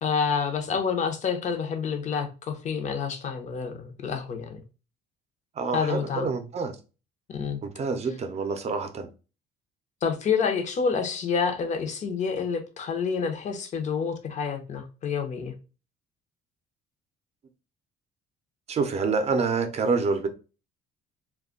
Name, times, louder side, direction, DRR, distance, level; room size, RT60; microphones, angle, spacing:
voice 1, 0.0-4.6 5.7-6.3 7.3-7.6 10.0-15.5, left 6 dB, 45° left, 0.7 m, -28 dB
voice 2, 5.6-6.8 7.6-9.1 18.7-20.3, right 4 dB, 40° right, 0.6 m, -27 dB
2.3 x 2.2 x 3.7 m
cardioid pair, 110°, 17 cm